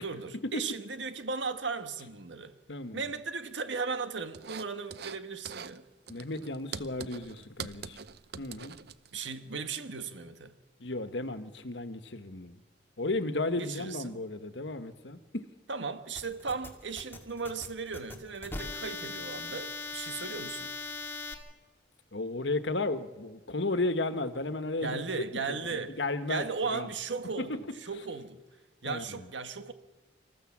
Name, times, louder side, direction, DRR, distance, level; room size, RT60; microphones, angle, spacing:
voice 1, 0.0-2.5 2.9-5.8 9.1-10.5 13.6-14.2 15.7-20.7 24.8-26.0 26.3-28.4 28.8-29.7, right 4 dB, 85° right, 1.5 m, -36 dB
voice 2, 2.7-3.0 6.1-8.0 8.4-8.7 10.8-12.6 13.0-15.4 22.1-25.0 25.5-26.9 27.4-27.6 28.8-29.3, left 2 dB, 75° left, 1.4 m, -34 dB
sound 1, 4.3-5.2 5.5-5.8 6.1-9.3, right 6 dB, 60° right, 0.7 m, -43 dB
sound 2, 16.2-21.3, left 3 dB, 10° left, 2.2 m, -40 dB
26.5 x 14.5 x 7.3 m
head